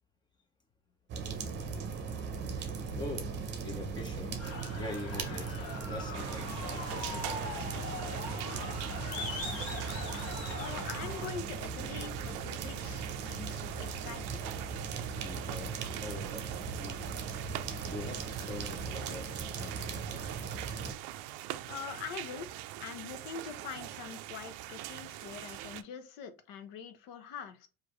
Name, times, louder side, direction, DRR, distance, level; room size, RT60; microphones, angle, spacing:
sound 1, 1.1-20.9, right 5 dB, 35° right, 0.8 m, -39 dB
voice 1, 2.6-5.6 5.9-9.6 9.9-10.0 15.1-17.1 17.4-20.4 20.8-20.9, left 2 dB, 15° left, 0.6 m, -45 dB
sound 2, 4.4-11.3, left 4 dB, 45° left, 1.1 m, -41 dB
sound 3, 6.1-25.8, right 14 dB, 80° right, 0.5 m, -43 dB
voice 2, 10.6-14.7 21.7-22.5 22.8-27.7, left 7 dB, 70° left, 0.9 m, -44 dB
4.9 x 2.6 x 3.1 m
cardioid pair, 170°, 32 cm